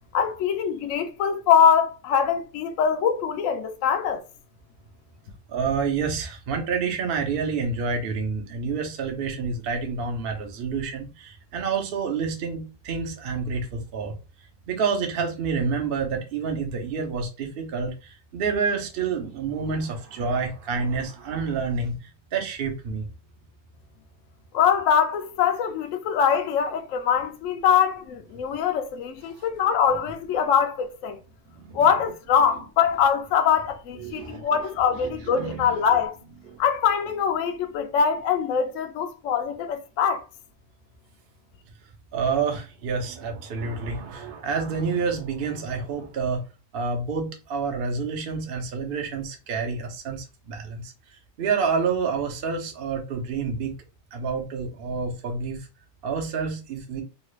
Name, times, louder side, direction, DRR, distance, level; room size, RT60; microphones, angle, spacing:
voice 1, 0.1-4.2 24.5-31.2 31.7-36.2 36.6-40.2, left 7 dB, 70° left, 0.7 m, -23 dB
voice 2, 5.5-14.2 14.7-23.1 31.5-31.9 34.0-34.7 34.9-35.8 36.5-36.6 42.1-46.4 46.7-50.9 51.4-53.7 54.1-55.7 56.0-57.0, right 5 dB, 55° right, 0.6 m, -28 dB
3.0 x 2.4 x 3.1 m
omnidirectional pair, 1.8 m